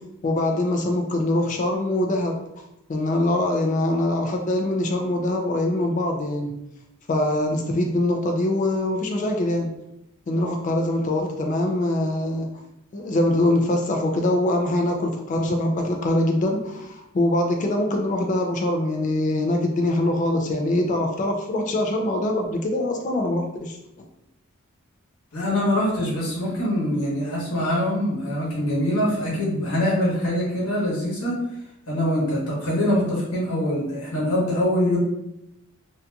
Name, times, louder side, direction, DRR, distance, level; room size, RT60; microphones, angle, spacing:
voice 1, 0.2-2.4 2.9-6.5 7.1-9.7 10.3-12.5 12.9-23.8, left 1 dB, 35° left, 2 dB, 0.3 m, -23 dB
voice 2, 25.3-31.3 31.9-35.0, left 1 dB, 80° left, -6 dB, 1.1 m, -24 dB
2.8 x 2.5 x 2.2 m, 0.87 s
head